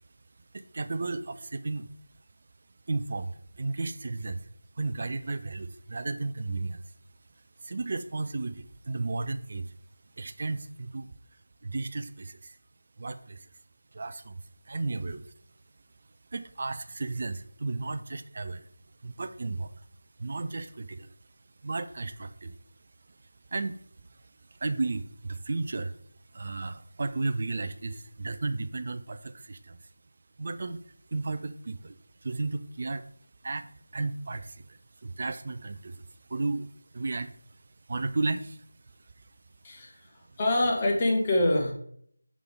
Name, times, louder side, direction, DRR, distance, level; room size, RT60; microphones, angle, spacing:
voice 1, 0.5-1.9 2.9-4.4 4.8-6.8 7.6-9.7 10.2-11.1 11.6-12.6 13.0-13.5 13.9-15.3 16.3-18.7 19.0-19.7 20.2-21.1 21.6-22.5 23.5-23.8 24.6-25.9 26.3-29.8 30.4-30.8 31.1-33.0 33.4-36.0 36.3-37.3 37.9-38.6, right 3 dB, 35° right, 12 dB, 0.4 m, -33 dB
voice 2, 39.6-41.7, left 1 dB, 20° left, 0 dB, 1.0 m, -26 dB
6.0 x 3.3 x 5.1 m, 0.64 s
figure-of-eight pair, 165°, 0 cm